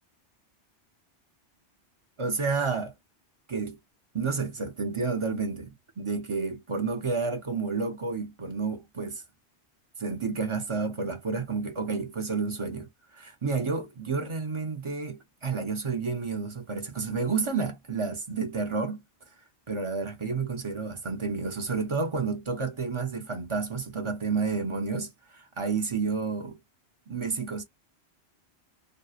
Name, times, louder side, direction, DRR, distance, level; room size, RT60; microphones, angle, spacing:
voice 1, 2.2-2.9 3.5-3.8 4.1-9.2 10.0-19.0 19.7-26.6 27.1-27.6, right 4 dB, 35° right, 0.5 m, -30 dB
2.7 x 2.0 x 2.4 m
omnidirectional pair, 1.1 m